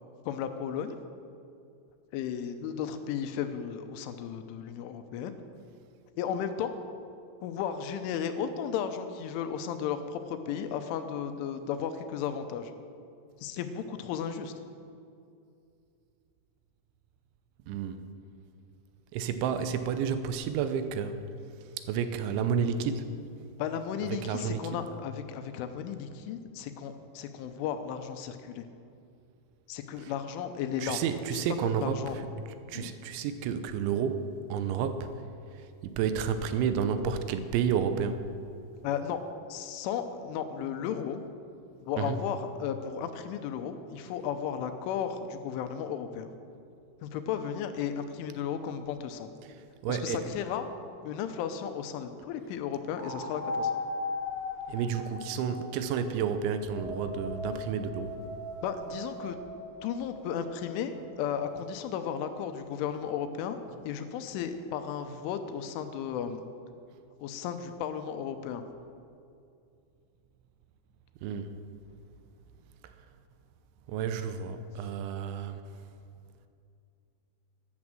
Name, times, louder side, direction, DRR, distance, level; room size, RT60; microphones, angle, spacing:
voice 1, 0.3-1.0 2.1-5.3 6.2-6.7 7.4-12.7 13.4-14.5 23.6-28.7 29.7-31.0 31.3-32.2 32.7-32.9 38.8-39.2 39.5-41.2 41.8-46.3 47.0-49.3 49.9-50.7 51.0-53.7 58.6-59.4 59.8-63.6 63.8-66.5 67.2-68.6, left 8 dB, 85° left, 8 dB, 3.2 m, -34 dB
voice 2, 17.7-18.1 19.1-21.2 21.9-23.1 24.0-24.8 30.0-30.1 30.8-32.3 32.7-35.1 35.5-38.2 42.0-42.2 49.4-49.5 49.8-50.3 54.7-58.2 71.2-71.6 73.9-75.6, right 7 dB, 80° right, 9 dB, 3.0 m, -31 dB
sound 1, 53.0-56.1 56.6-61.3, left 2 dB, 40° left, 3.2 m, -38 dB
12.5 x 10.5 x 7.5 m, 2.4 s
omnidirectional pair, 5.7 m